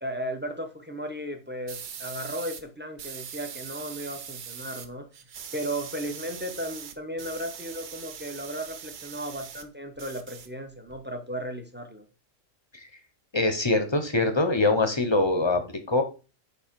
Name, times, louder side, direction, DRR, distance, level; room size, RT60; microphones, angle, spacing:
voice 1, 0.0-5.1 5.5-12.1, equal, 10° right, 6 dB, 0.5 m, -35 dB
sound 1, 1.7-2.6 3.0-4.9 5.1-9.7 10.0-11.0, right 8 dB, 55° right, 0.6 m, -41 dB
voice 2, 13.3-16.0, left 2 dB, 25° left, 7 dB, 0.6 m, -24 dB
5.4 x 4.6 x 4.4 m, 0.33 s
omnidirectional pair, 1.4 m